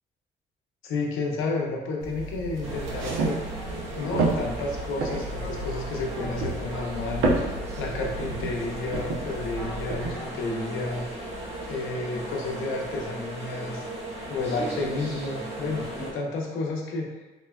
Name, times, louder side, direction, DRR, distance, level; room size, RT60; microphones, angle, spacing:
voice 1, 0.8-3.4 4.0-7.4 7.8-11.1 11.7-13.8 14.3-17.1, left 3 dB, 85° left, -1 dB, 0.6 m, -31 dB
sound 1, 2.0-10.1, right 2 dB, 90° right, 0.5 m, -31 dB
sound 2, 2.6-16.1, right 1 dB, 30° right, 1.1 m, -37 dB
3.7 x 2.0 x 2.3 m, 1.1 s
cardioid pair, 90°, 20 cm